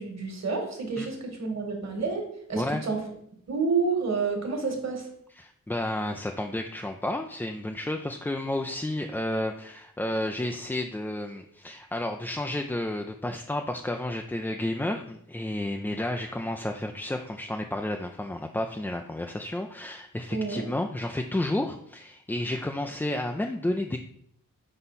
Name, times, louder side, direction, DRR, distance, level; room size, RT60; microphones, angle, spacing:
voice 1, 0.0-3.0 3.5-5.1 20.3-20.6, right 4 dB, 55° right, 2 dB, 1.7 m, -29 dB
voice 2, 5.4-24.0, left 1 dB, 5° left, 4 dB, 0.3 m, -31 dB
5.6 x 4.4 x 4.0 m, 0.71 s
cardioid pair, 80°, 33 cm